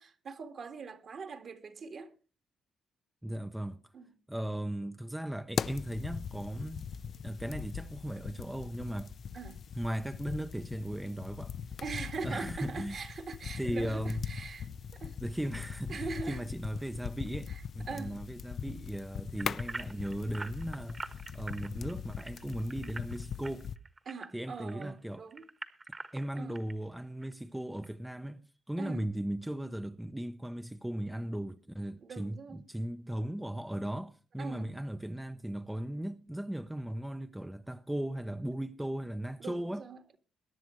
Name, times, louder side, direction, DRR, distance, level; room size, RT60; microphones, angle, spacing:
voice 1, 0.0-2.1 3.9-4.1 9.3-9.6 11.8-15.2 15.9-16.4 17.5-18.2 24.1-25.5 26.4-26.6 28.8-29.1 32.0-32.6 34.4-34.7 39.4-40.2, right 4 dB, 50° right, 1.8 m, -42 dB
voice 2, 3.2-3.8 4.3-6.8 7.2-9.1 9.7-11.7 12.2-13.0 13.6-14.2 15.2-23.7 24.3-25.2 26.1-28.4 28.7-39.8, right 1 dB, 5° right, 0.6 m, -37 dB
sound 1, 5.5-23.8, left 7 dB, 55° left, 0.5 m, -41 dB
sound 2, 19.4-24.8 25.3-26.7 27.2-27.3 27.8-27.9, right 3 dB, 25° right, 1.3 m, -44 dB
22.0 x 10.5 x 3.1 m
cardioid pair, 90°, 0 cm